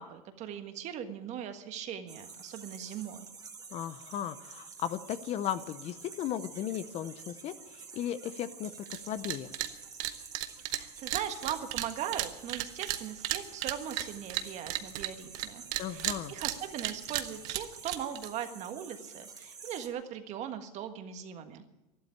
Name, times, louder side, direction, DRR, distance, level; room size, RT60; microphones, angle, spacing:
voice 1, 0.0-3.3 10.7-21.6, right 9 dB, 35° right, 8 dB, 1.5 m, -39 dB
sound 1, 2.1-19.9, right 5 dB, 20° right, 1.9 m, -49 dB
voice 2, 3.7-9.5 15.8-16.3, left 10 dB, 35° left, 13 dB, 0.7 m, -36 dB
sound 2, 8.9-9.0 9.2-9.7 10.0-15.5 15.7-18.3, right 15 dB, 55° right, 1.1 m, -34 dB
12.0 x 12.0 x 9.9 m, 1.0 s
supercardioid pair, 140°, 20 cm